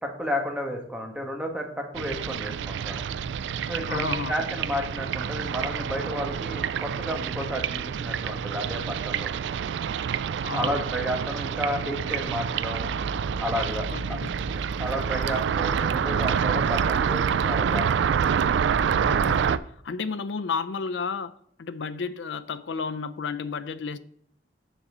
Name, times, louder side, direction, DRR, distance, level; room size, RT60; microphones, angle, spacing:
voice 1, 0.0-3.0 3.7-9.3 10.5-12.9 13.4-13.9 14.8-18.1, equal, 5° right, 1.3 m, -32 dB
sound 1, 1.9-19.6, right 7 dB, 80° right, 0.3 m, -27 dB
voice 2, 3.9-4.3 10.4-10.8 13.9-14.3 19.0-21.3 21.6-24.0, left 5 dB, 90° left, 0.5 m, -32 dB
sound 2, 12.7-19.5, equal, 25° left, 3.1 m, -39 dB
7.3 x 4.2 x 6.7 m
head